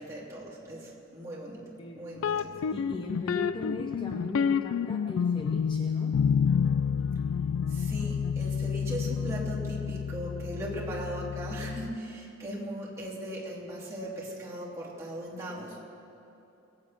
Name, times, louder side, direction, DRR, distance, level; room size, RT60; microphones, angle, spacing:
voice 1, 0.0-2.5 7.7-15.9, right 1 dB, 15° right, -8 dB, 3.0 m, -39 dB
voice 2, 1.8-2.2 2.7-6.2, left 2 dB, 25° left, 2 dB, 0.7 m, -38 dB
sound 1, 2.2-12.0, left 7 dB, 75° left, 0.3 m, -29 dB
21.0 x 8.8 x 6.0 m, 2.9 s
head